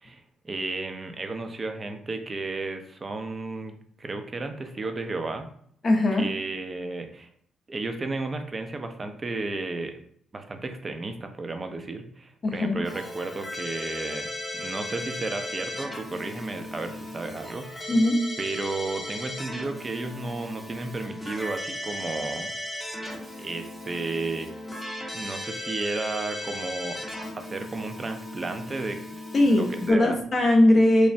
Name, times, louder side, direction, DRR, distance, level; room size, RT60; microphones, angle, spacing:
voice 1, 0.0-5.5 6.2-7.3 7.7-10.0 10.3-14.3 14.5-17.9 18.4-22.5 23.3-24.5 25.1-27.0 27.4-30.2, right 3 dB, 30° right, 6 dB, 0.4 m, -33 dB
voice 2, 5.8-6.3 12.4-12.8 17.9-18.4 29.3-31.1, left 1 dB, 40° left, 1 dB, 0.5 m, -20 dB
Keyboard (musical), 12.8-29.9, left 1 dB, 5° left, 0.8 m, -37 dB
3.1 x 2.0 x 2.6 m, 0.62 s
cardioid pair, 90°, 0 cm